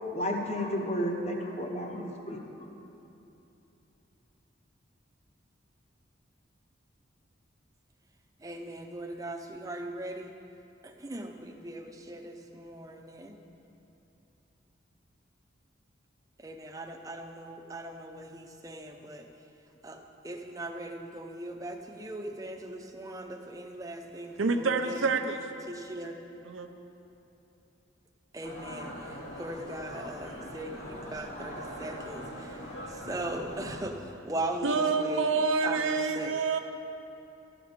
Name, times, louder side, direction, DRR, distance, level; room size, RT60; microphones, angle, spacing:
voice 1, 0.1-2.4, equal, 35° left, 1 dB, 1.0 m, -32 dB
voice 2, 8.4-10.3 10.8-13.3 16.4-19.2 19.8-25.0 25.7-26.2 28.3-32.6 33.1-34.0 34.2-35.4 35.6-36.3, right 1 dB, 20° right, 3 dB, 0.6 m, -39 dB
voice 3, 24.4-25.5 26.4-26.7 34.6-36.6, right 4 dB, 90° right, 6 dB, 0.7 m, -27 dB
sound 1, 28.4-33.8, equal, 80° left, 2.2 m, -42 dB
13.5 x 5.0 x 8.2 m, 2.9 s
head